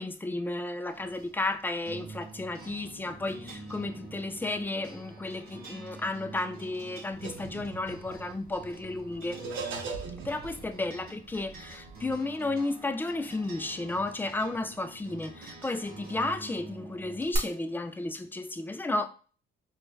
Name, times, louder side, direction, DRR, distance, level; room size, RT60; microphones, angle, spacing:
voice 1, 0.0-9.4 10.2-19.1, left 2 dB, 10° left, 0.3 m, -33 dB
sound 1, 0.9-17.4, right 3 dB, 50° right, 1.0 m, -46 dB
sound 2, 7.1-12.1, right 4 dB, 70° right, 0.7 m, -41 dB
4.2 x 2.2 x 2.6 m
cardioid pair, 90°, 20 cm